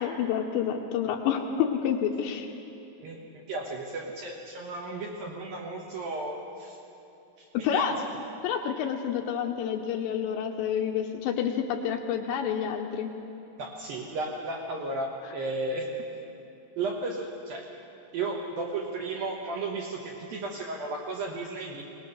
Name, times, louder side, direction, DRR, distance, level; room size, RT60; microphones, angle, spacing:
voice 1, 0.0-2.5 7.5-7.9 8.4-13.1, left 8 dB, 80° left, 3 dB, 2.9 m, -28 dB
voice 2, 3.0-6.8 7.4-7.9 13.6-15.9 16.8-17.7 18.1-21.8, right 2 dB, 70° right, -1 dB, 2.3 m, -34 dB
23.0 x 19.0 x 6.7 m, 2.8 s
omnidirectional pair, 5.7 m